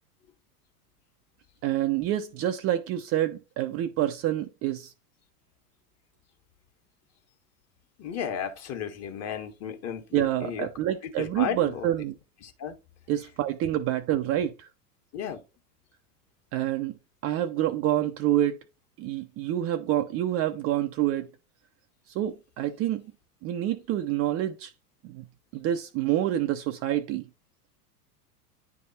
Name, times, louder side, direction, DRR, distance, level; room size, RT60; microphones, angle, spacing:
voice 1, 1.6-4.9 10.1-12.1 13.1-14.7 16.5-16.9 17.2-18.6 19.0-21.3 22.1-23.0 23.4-24.7 25.0-25.3 25.5-27.2, right 12 dB, 30° right, 0.6 m, -27 dB
voice 2, 8.0-10.7 11.2-11.9 12.4-12.7 15.1-15.4, left 8 dB, 30° left, 1.6 m, -34 dB
10.0 x 3.5 x 4.2 m
hypercardioid pair, 100°, 48 cm